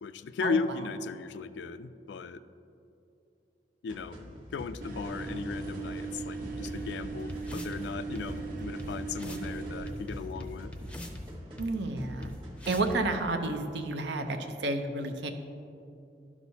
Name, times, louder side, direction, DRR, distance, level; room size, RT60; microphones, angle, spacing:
voice 1, 0.0-2.4 3.8-10.7, left 5 dB, 75° left, 12 dB, 0.3 m, -36 dB
sound 1, 3.9-13.2, equal, 30° right, 1.2 m, -45 dB
sound 2, 4.8-9.9, right 3 dB, 50° right, 1.0 m, -38 dB
sound 3, 6.6-6.7 7.3-7.8 8.1-8.2 8.8-8.9 9.2-9.5 9.9-11.2 11.6-11.7 12.2-12.3 12.6-13.0, left 1 dB, 5° left, 0.5 m, -42 dB
voice 2, 11.6-12.3 12.7-15.3, right 2 dB, 80° right, 6 dB, 0.6 m, -31 dB
12.0 x 6.1 x 2.7 m, 2.6 s
head